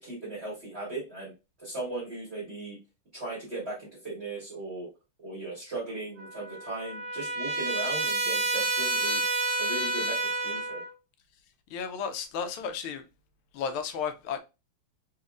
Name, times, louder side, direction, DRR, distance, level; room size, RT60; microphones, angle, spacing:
voice 1, 0.0-1.3 1.6-2.8 3.1-4.9 5.2-9.3 9.6-10.8, right 2 dB, 35° right, 1.5 m, -37 dB
Trumpet, 6.2-10.9, right 2 dB, 70° right, 0.7 m, -29 dB
voice 2, 11.7-13.0 13.5-14.4, left 6 dB, 85° left, 1.5 m, -33 dB
4.1 x 2.8 x 2.4 m
omnidirectional pair, 2.3 m